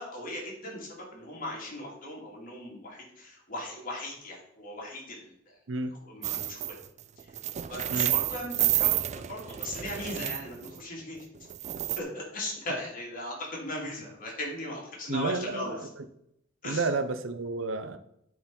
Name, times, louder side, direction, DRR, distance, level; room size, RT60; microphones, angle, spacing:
voice 1, 0.0-5.6 6.0-6.8 7.7-11.3 12.0-15.7 16.6-16.9, left 1 dB, 40° left, -2 dB, 2.8 m, -38 dB
sound 1, 6.2-6.9 7.2-10.8 11.5-12.0, right 13 dB, 35° right, 0.3 m, -30 dB
voice 2, 15.1-15.8 16.6-18.0, right 3 dB, 65° right, 10 dB, 0.7 m, -30 dB
9.4 x 4.7 x 5.4 m, 0.77 s
head